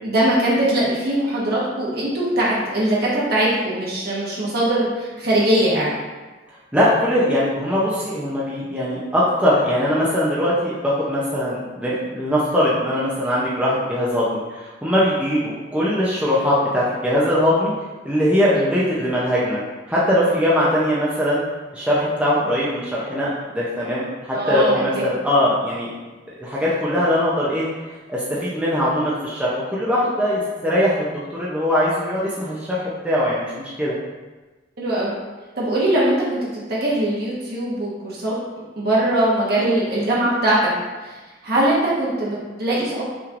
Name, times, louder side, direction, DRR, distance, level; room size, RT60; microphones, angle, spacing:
voice 1, 0.0-5.9 24.3-25.0 34.8-35.1 35.5-36.4 36.7-38.4 38.8-40.6 41.0-41.2 41.4-43.0, right 1 dB, 55° right, -6 dB, 1.3 m, -21 dB
voice 2, 6.7-17.7 18.0-19.6 19.9-21.4 21.7-25.9 26.3-27.7 28.1-33.9, equal, 5° right, -8 dB, 0.6 m, -21 dB
5.8 x 3.1 x 2.5 m, 1.2 s
head